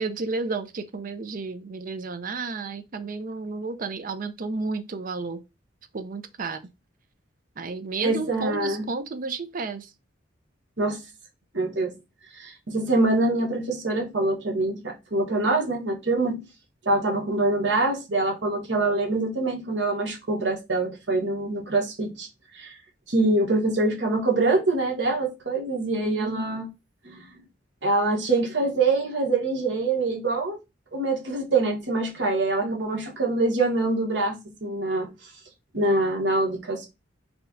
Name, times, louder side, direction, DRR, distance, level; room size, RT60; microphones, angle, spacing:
voice 1, 0.0-5.4 5.9-6.6 7.6-9.9 26.0-26.5 32.6-33.0, right 3 dB, 50° right, 0.5 m, -32 dB
voice 2, 8.0-8.9 10.8-11.0 11.5-11.9 12.4-16.4 16.8-22.3 22.5-22.7 23.1-26.7 27.0-27.3 27.8-30.6 30.9-35.1 35.7-36.9, right 2 dB, 70° right, 1.3 m, -24 dB
4.3 x 2.2 x 3.8 m
head